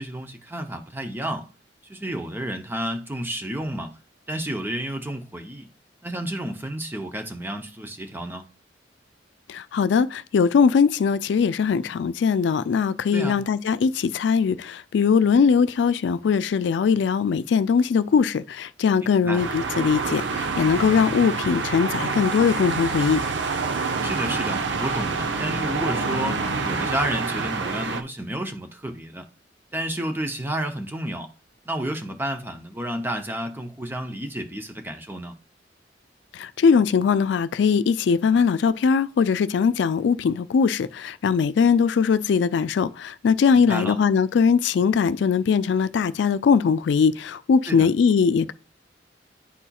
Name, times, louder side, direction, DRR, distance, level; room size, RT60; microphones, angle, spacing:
voice 1, 0.0-1.5 1.9-4.0 4.3-5.7 6.0-8.4 13.1-13.5 19.0-19.5 24.0-29.2 29.7-31.3 31.7-35.3 43.5-44.0 47.7-47.9, right 1 dB, 10° right, 0.6 m, -31 dB
voice 2, 9.5-23.2 36.3-48.5, left 6 dB, 70° left, 0.3 m, -21 dB
sound 1, 19.4-28.0, right 4 dB, 80° right, 0.7 m, -27 dB
9.9 x 4.2 x 2.3 m
head